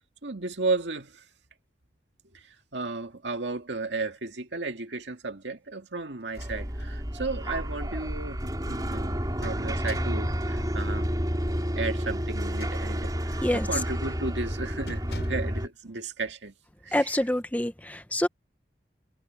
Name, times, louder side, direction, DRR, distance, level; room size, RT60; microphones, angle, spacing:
voice 1, 0.2-1.2 2.3-2.5 2.7-11.1 11.4-16.5 16.8-17.1, right 3 dB, 85° right, 2.1 m, -34 dB
sound 1, 6.2-7.0 7.4-7.5 8.9-10.3 12.3-13.2 13.7-14.0 14.3-14.5 14.9-15.6, left 1 dB, 70° left, 7.2 m, -44 dB
sound 2, 6.4-15.7, equal, 20° right, 4.6 m, -30 dB
voice 2, 16.9-18.3, left 1 dB, 10° left, 0.9 m, -26 dB
head